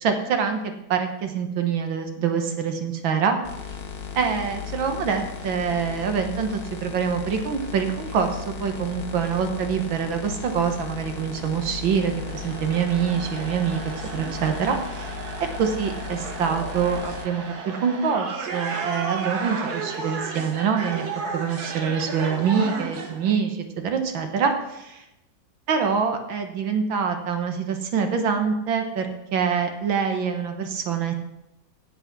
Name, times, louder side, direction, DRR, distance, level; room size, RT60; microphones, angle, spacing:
voice 1, 0.0-3.4 4.2-13.8 14.1-21.1 21.3-25.1 25.7-31.1, right 6 dB, 75° right, 6 dB, 1.9 m, -25 dB
sound 1, 3.4-17.3, left 6 dB, 45° left, 0.8 m, -36 dB
sound 2, 4.6-4.7 5.0-5.1 5.4-23.3, right 4 dB, 55° right, 1.6 m, -35 dB
9.0 x 8.2 x 6.0 m, 0.89 s
omnidirectional pair, 2.2 m